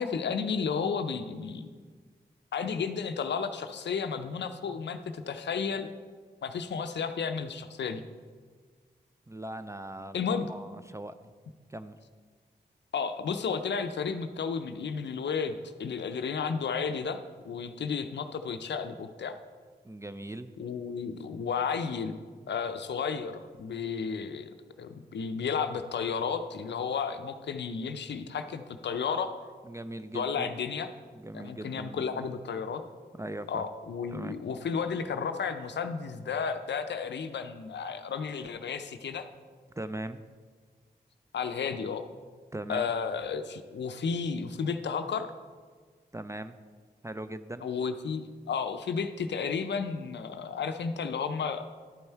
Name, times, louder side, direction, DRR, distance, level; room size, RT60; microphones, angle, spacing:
voice 1, 0.0-1.7 2.5-5.9 6.4-8.0 10.1-10.5 12.9-17.2 17.4-19.4 20.6-22.1 22.5-24.5 24.8-29.3 30.1-30.9 31.3-32.8 33.5-39.3 41.3-42.0 42.7-45.3 47.6-51.6, left 6 dB, 75° left, 9 dB, 0.5 m, -32 dB
voice 2, 9.3-11.3 11.7-12.0 19.8-20.5 29.6-30.5 31.1-32.3 33.2-33.7 34.1-34.4 39.8-40.2 42.5-42.9 46.1-46.6 47.0-47.7, right 1 dB, 15° right, 11 dB, 0.5 m, -40 dB
11.0 x 5.4 x 4.5 m, 1.5 s
cardioid pair, 45°, 18 cm